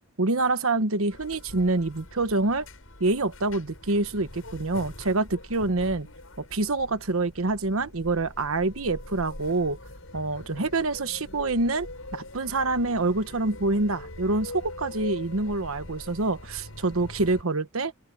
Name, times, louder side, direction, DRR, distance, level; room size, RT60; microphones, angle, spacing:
voice 1, 0.2-2.7 3.0-6.1 6.4-9.8 10.1-11.9 12.1-17.9, right 2 dB, 85° right, 1.2 m, -26 dB
sound 1, 1.1-17.4, left 1 dB, 80° left, 6.8 m, -43 dB
open air
head